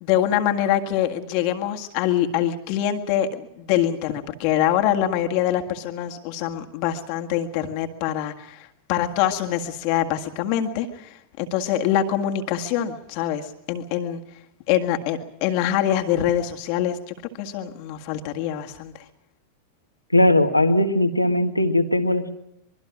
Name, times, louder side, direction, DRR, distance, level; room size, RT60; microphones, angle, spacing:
voice 1, 0.0-14.2 14.7-19.1, left 11 dB, 45° left, 4 dB, 1.8 m, -24 dB
voice 2, 20.1-22.3, left 1 dB, 85° left, 6 dB, 1.7 m, -19 dB
24.5 x 22.5 x 6.1 m, 0.80 s
figure-of-eight pair, 90°, 0 cm